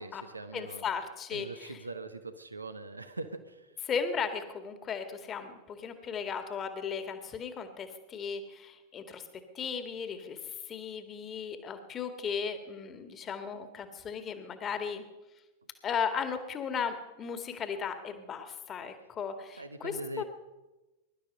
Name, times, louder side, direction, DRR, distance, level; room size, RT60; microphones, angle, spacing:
voice 1, 0.0-0.9 1.3-3.7 19.6-20.2, right 2 dB, 80° right, 10 dB, 1.2 m, -42 dB
voice 2, 0.5-1.8 3.9-9.2 9.5-15.0 15.8-20.2, left 6 dB, 25° left, 8 dB, 1.9 m, -36 dB
22.5 x 12.0 x 5.4 m, 1.1 s
figure-of-eight pair, 90°, 0 cm